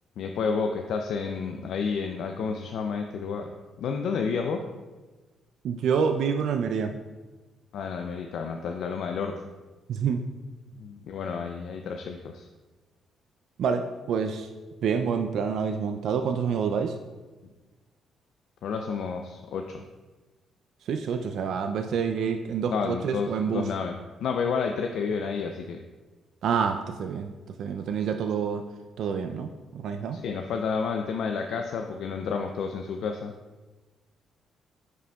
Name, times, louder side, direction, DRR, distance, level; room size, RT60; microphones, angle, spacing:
voice 1, 0.2-3.5 3.8-4.6 7.7-9.5 10.8-12.5 18.6-19.8 22.7-25.8 30.1-33.3, left 5 dB, 75° left, 4 dB, 0.4 m, -30 dB
voice 2, 5.6-6.9 9.9-10.2 13.6-14.5 14.8-16.9 20.8-23.7 26.4-27.3 27.6-28.6 29.0-30.2, right 6 dB, 70° right, 6 dB, 0.3 m, -27 dB
9.4 x 5.0 x 2.3 m, 1.2 s
cardioid pair, 90°, 0 cm